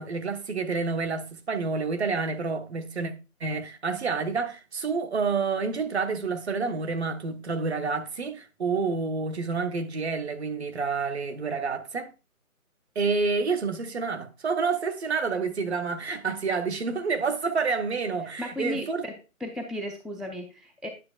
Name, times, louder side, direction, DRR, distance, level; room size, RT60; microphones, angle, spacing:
voice 1, 0.0-3.1 3.4-12.1 12.9-19.0, right 4 dB, 50° right, 0.9 m, -28 dB
voice 2, 18.4-19.1 19.4-20.9, left 1 dB, ahead, 0.3 m, -35 dB
9.5 x 6.3 x 2.3 m
figure-of-eight pair, 145°, 43 cm